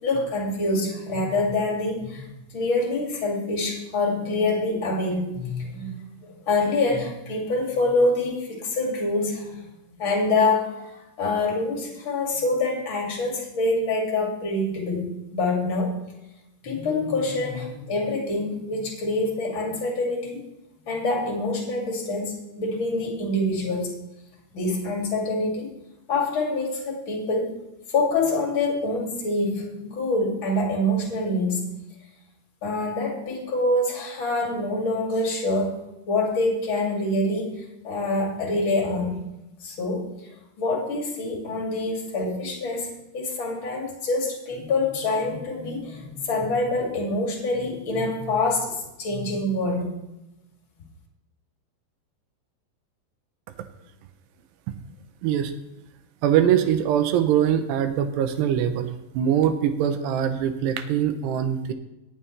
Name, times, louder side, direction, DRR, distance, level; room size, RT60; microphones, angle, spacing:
voice 1, 0.0-9.6 10.0-10.9 11.2-15.9 16.6-20.4 20.9-23.9 24.5-25.7 26.1-27.6 27.9-31.7 32.6-35.8 36.1-39.2 39.6-40.1 40.6-49.9, left 2 dB, 35° left, -1 dB, 2.7 m, -26 dB
voice 2, 55.2-55.5 56.2-61.7, right 9 dB, 80° right, 9 dB, 2.8 m, -22 dB
18.0 x 8.8 x 3.2 m, 0.95 s
omnidirectional pair, 5.0 m